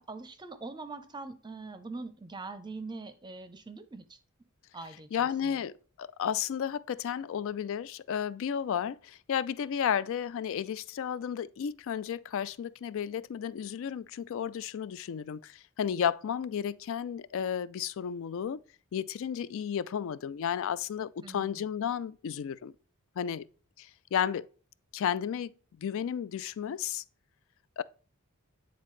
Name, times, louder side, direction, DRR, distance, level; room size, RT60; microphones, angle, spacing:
voice 1, 0.0-4.2 4.7-5.5 21.2-21.6, right 3 dB, 20° right, 0.6 m, -43 dB
voice 2, 5.1-18.6 18.9-22.7 23.2-23.5 23.8-24.5 24.9-25.5 25.8-27.0 27.8-27.9, left 8 dB, 60° left, 0.3 m, -33 dB
9.3 x 4.0 x 3.2 m
head